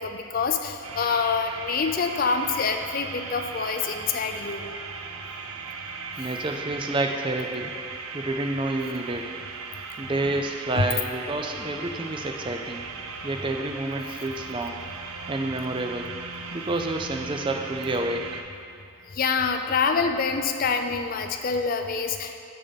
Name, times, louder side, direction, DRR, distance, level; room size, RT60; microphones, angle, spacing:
voice 1, 0.0-4.6 10.8-10.9 19.1-22.4, left 5 dB, 40° left, 6 dB, 0.4 m, -26 dB
sound 1, 0.8-18.4, right 4 dB, 75° right, 0.5 m, -37 dB
voice 2, 6.2-7.7 8.1-9.4 10.0-12.8 13.2-14.8 15.3-16.1 16.5-18.4, right 2 dB, 20° right, 4 dB, 0.4 m, -29 dB
7.3 x 6.5 x 4.0 m, 2.4 s
head